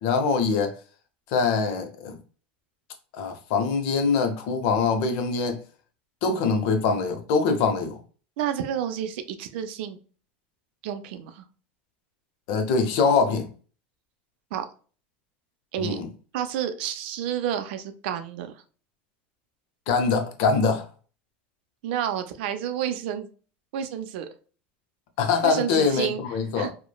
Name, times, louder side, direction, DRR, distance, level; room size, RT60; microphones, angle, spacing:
voice 1, 0.0-0.7 1.3-2.2 3.1-5.6 6.2-8.0 12.5-13.5 15.8-16.1 19.9-20.9 25.2-26.7, left 5 dB, 65° left, 0.7 m, -23 dB
voice 2, 8.4-10.0 10.8-11.5 14.5-14.7 15.7-16.0 16.3-18.6 21.8-23.3 23.7-24.3 25.4-26.2 26.6-26.7, right 9 dB, 70° right, 0.4 m, -30 dB
3.0 x 2.1 x 2.2 m
hypercardioid pair, 100°, 6 cm